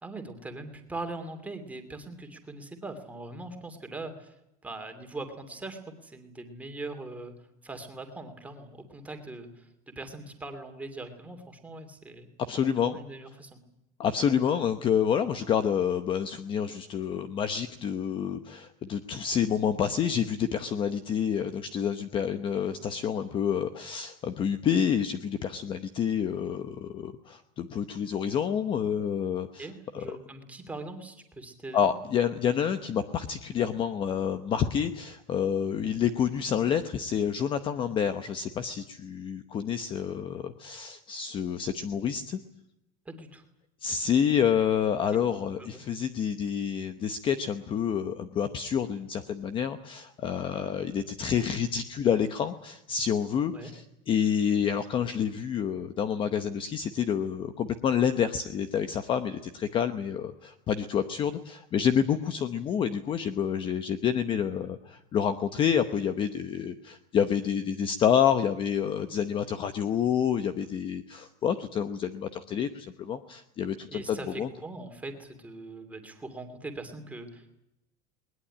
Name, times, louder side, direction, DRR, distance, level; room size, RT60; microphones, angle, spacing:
voice 1, 0.0-4.4 4.6-7.3 7.6-12.3 12.8-13.6 29.6-31.9 43.1-43.4 45.6-45.8 53.5-53.7 73.9-77.5, right 2 dB, 5° right, 5 dB, 2.7 m, -41 dB
voice 2, 12.5-13.0 14.0-29.7 29.9-30.2 31.7-42.4 43.8-74.5, left 8 dB, 25° left, 10 dB, 0.9 m, -28 dB
20.5 x 20.5 x 9.9 m, 0.83 s
cardioid pair, 180°, 21 cm